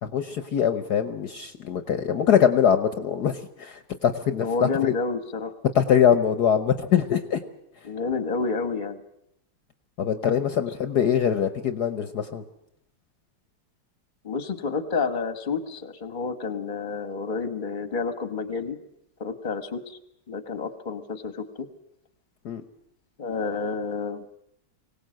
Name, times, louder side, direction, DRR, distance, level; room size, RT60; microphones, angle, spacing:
voice 1, 0.0-4.7 5.7-7.4 10.0-12.4 22.4-22.6, left 8 dB, 60° left, 9 dB, 1.4 m, -23 dB
voice 2, 4.4-5.6 7.8-9.0 14.2-18.8 19.2-20.0 20.3-21.7 23.2-24.2, left 4 dB, 25° left, 10 dB, 1.3 m, -29 dB
24.0 x 17.5 x 7.7 m, 0.78 s
omnidirectional pair, 2.2 m